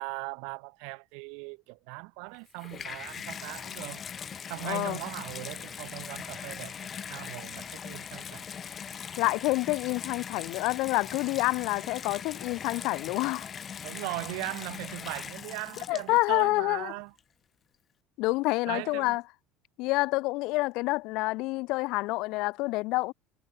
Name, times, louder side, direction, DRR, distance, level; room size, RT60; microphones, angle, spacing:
voice 1, 0.0-4.0 4.5-8.5 13.8-17.1 18.7-19.2, right 38 dB, 70° right, 2.0 m, -39 dB
Water tap faucet / Bathtub (filling or washing), 2.3-16.4 17.2-17.3, left 7 dB, 25° left, 0.7 m, -41 dB
voice 2, 4.6-5.0 9.2-13.5 15.9-16.9 18.2-19.2 19.8-23.1, left 22 dB, 60° left, 0.7 m, -28 dB
cardioid pair, 155°, 0 cm